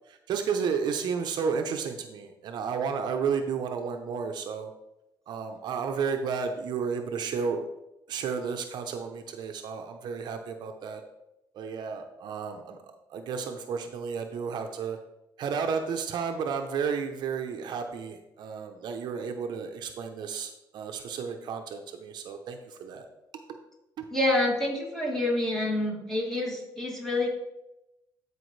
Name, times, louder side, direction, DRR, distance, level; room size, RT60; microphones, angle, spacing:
voice 1, 0.1-4.7 5.3-7.7 8.1-11.0 11.5-12.8 13.1-15.0 15.4-23.1 24.0-24.1, right 6 dB, 65° right, 5 dB, 0.8 m, -32 dB
voice 2, 24.1-27.3, left 1 dB, 5° left, -3 dB, 2.7 m, -27 dB
13.0 x 4.9 x 3.2 m, 0.91 s
cardioid pair, 110°, 8 cm